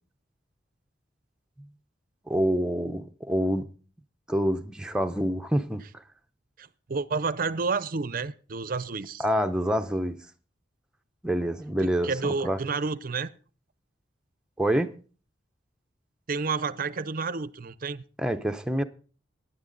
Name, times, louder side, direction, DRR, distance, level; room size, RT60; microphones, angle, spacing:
voice 1, 2.3-3.7 4.3-6.0 9.2-10.2 11.2-12.6 14.6-14.9 18.2-18.8, equal, 5° right, 0.7 m, -27 dB
voice 2, 6.6-9.2 11.8-13.3 16.3-18.0, right 4 dB, 50° right, 0.6 m, -30 dB
16.0 x 10.5 x 3.9 m
head